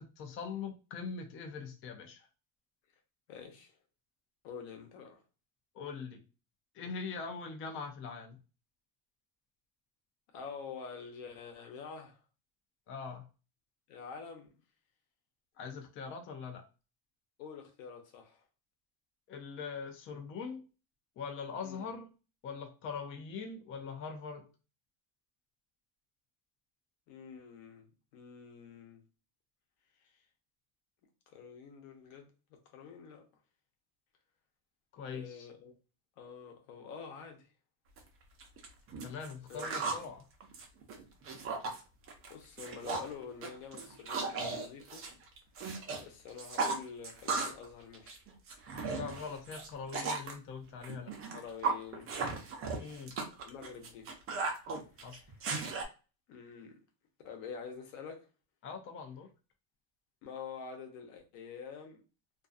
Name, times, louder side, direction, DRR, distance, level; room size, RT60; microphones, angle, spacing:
voice 1, 0.0-2.3 5.7-6.2 6.7-8.4 12.9-13.2 15.6-16.6 19.3-20.6 21.2-22.1 22.4-24.5 34.9-35.5 39.0-40.2 48.8-51.1 52.8-53.1 55.0-55.2 58.6-59.3, left 5 dB, 35° left, 0.5 m, -42 dB
voice 2, 3.3-3.7 4.4-5.2 10.3-12.2 13.9-14.5 17.4-18.4 21.6-21.9 27.1-27.9 28.1-29.0 31.3-32.3 32.7-33.2 35.1-35.7 36.2-37.5 39.5-39.8 42.3-45.1 46.0-48.2 51.3-52.2 53.4-54.1 55.2-55.3 56.3-56.8 57.2-58.3 60.2-62.0, left 6 dB, 85° left, 0.9 m, -47 dB
sound 1, 38.0-38.1 38.4-40.1 40.4-41.8 42.1-42.3 42.6-43.1 43.4-46.0 46.3-47.7 47.9-50.3 50.8-55.8, right 4 dB, 40° right, 0.7 m, -36 dB
2.5 x 2.3 x 2.4 m
cardioid pair, 140°, 35 cm